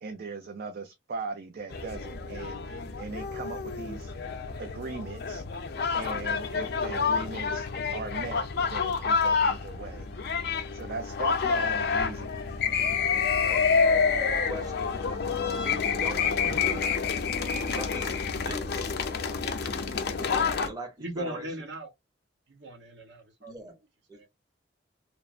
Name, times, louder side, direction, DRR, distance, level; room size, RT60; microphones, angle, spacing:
voice 1, 0.0-4.1 4.6-5.4 5.9-10.1 10.7-12.4, right 3 dB, 55° right, 0.4 m, -39 dB
sound 1, 1.7-20.7, left 5 dB, 60° left, 0.5 m, -28 dB
voice 2, 14.4-14.9 15.6-16.9 17.7-18.9 19.5-21.5 23.5-23.8 24.1-24.3, right 2 dB, 20° right, 0.7 m, -41 dB
voice 3, 21.0-21.9 22.5-23.5 24.1-24.3, right 1 dB, 75° right, 0.9 m, -38 dB
3.0 x 2.0 x 2.3 m
head